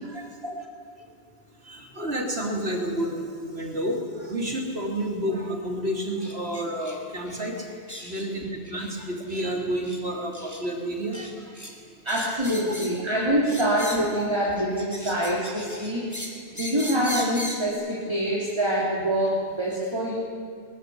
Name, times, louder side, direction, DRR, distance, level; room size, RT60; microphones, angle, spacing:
voice 1, 1.6-7.7 8.0-11.5, right 1 dB, 80° right, 1 dB, 3.7 m, -30 dB
sound 1, 6.2-6.4 6.8-7.0 7.2-7.4 7.9-8.3 8.6-8.9 9.3-9.4 9.8-10.0 10.3-10.6 11.1-11.7 12.1-13.0 13.4-14.2 14.6-17.7, left 1 dB, 15° left, 2.7 m, -38 dB
voice 2, 12.0-16.1 16.6-20.1, equal, 25° right, -5 dB, 3.6 m, -25 dB
22.5 x 20.0 x 9.6 m, 2.2 s
omnidirectional pair, 1.0 m